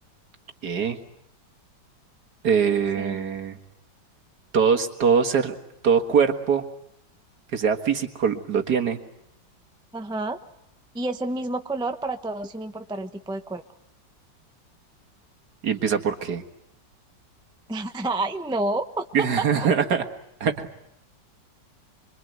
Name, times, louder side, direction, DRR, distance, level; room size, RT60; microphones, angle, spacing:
voice 1, 0.6-1.0 2.4-3.6 4.5-5.6 5.8-6.6 7.5-9.0 15.6-16.4 19.1-20.1 20.4-20.8, right 6 dB, 60° right, 4 dB, 2.2 m, -22 dB
voice 2, 9.9-10.4 10.9-13.6 17.7-19.3 19.6-19.7, right 2 dB, 5° right, 7 dB, 0.5 m, -29 dB
25.0 x 24.5 x 9.4 m, 0.78 s
omnidirectional pair, 2.0 m